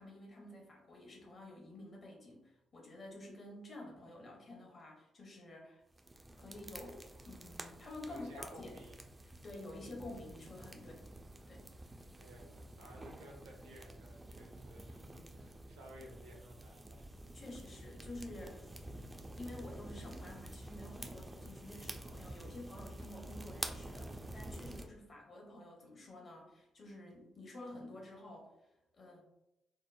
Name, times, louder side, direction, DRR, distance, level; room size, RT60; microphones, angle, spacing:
voice 1, 0.0-5.8 6.4-8.8 9.2-11.1 11.5-11.7 17.3-18.6 19.4-28.5 28.9-29.2, left 1 dB, 40° left, -1 dB, 0.8 m, -50 dB
sound 1, 5.9-24.9, right 1 dB, 20° right, 0.3 m, -49 dB
voice 2, 8.1-9.1 12.1-17.1, right 1 dB, 70° right, -1 dB, 0.5 m, -56 dB
2.9 x 2.0 x 2.3 m, 0.92 s
figure-of-eight pair, 40°, 0 cm